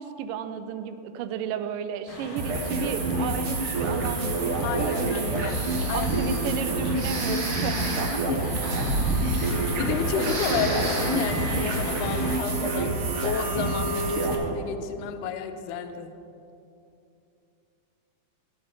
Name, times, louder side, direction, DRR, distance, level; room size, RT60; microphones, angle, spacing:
voice 1, 0.0-4.5 4.8-5.5 5.9-8.5, right 8 dB, 85° right, 10 dB, 2.1 m, -33 dB
sound 1, 2.1-12.4, left 3 dB, 60° left, 1.7 m, -37 dB
sound 2, 2.4-14.3, right 2 dB, 60° right, 1.5 m, -28 dB
voice 2, 4.6-5.6 5.9-6.1 8.1-8.4 9.4-16.2, left 7 dB, 80° left, 8 dB, 2.1 m, -32 dB
Breathing, 5.4-6.4 7.0-9.9 10.1-11.3, right 1 dB, 40° right, 1.4 m, -31 dB
16.0 x 7.8 x 3.9 m, 2.7 s
omnidirectional pair, 3.8 m